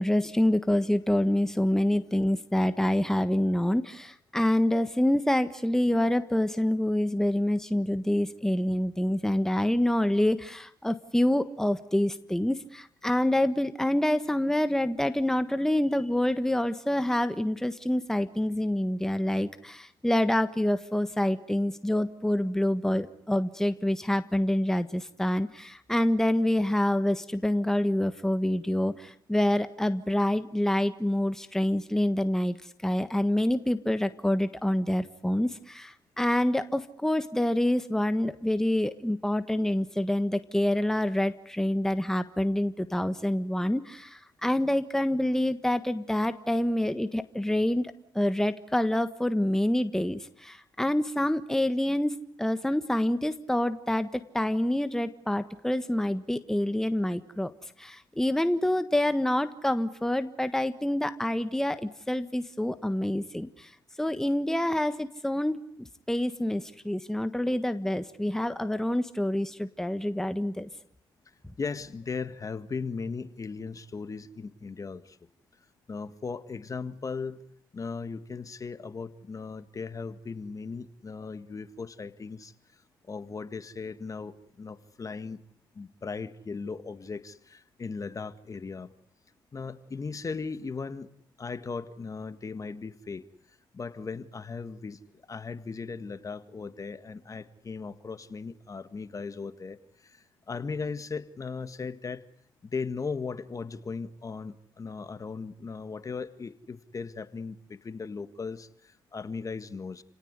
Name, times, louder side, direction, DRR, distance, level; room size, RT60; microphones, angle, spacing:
voice 1, 0.0-32.6 32.8-57.5 57.8-63.7 64.0-65.6 66.1-70.7, left 1 dB, 5° left, 10 dB, 1.5 m, -27 dB
voice 2, 71.6-75.2 75.9-77.4 77.7-82.5 83.0-85.4 85.8-88.9 89.5-91.1 91.4-93.2 93.7-102.2 102.6-110.0, left 4 dB, 35° left, 11 dB, 1.8 m, -37 dB
29.5 x 18.0 x 9.7 m, 0.70 s
supercardioid pair, 65°, 9 cm